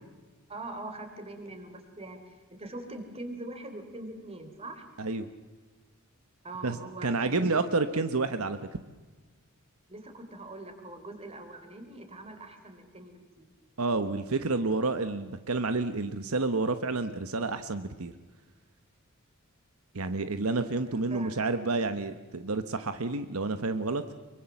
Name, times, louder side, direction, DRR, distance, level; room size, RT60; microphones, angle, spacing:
voice 1, 0.5-4.9 6.4-8.0 9.9-13.5 20.8-21.3, right 2 dB, 30° right, 6 dB, 3.6 m, -43 dB
voice 2, 6.6-8.6 13.8-18.1 19.9-24.0, right 3 dB, 80° right, 10 dB, 1.1 m, -29 dB
25.0 x 23.5 x 7.2 m, 1.3 s
head